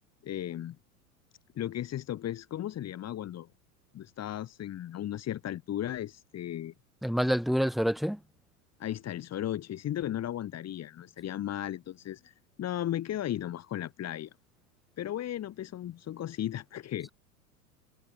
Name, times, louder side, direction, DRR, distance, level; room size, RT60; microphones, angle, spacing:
voice 1, 0.2-0.8 1.5-3.5 3.9-6.7 8.8-14.3 15.0-17.1, left 12 dB, 35° left, 6.4 m, -35 dB
voice 2, 7.0-8.2, equal, ahead, 7.8 m, -27 dB
figure-of-eight pair, 90°, 47 cm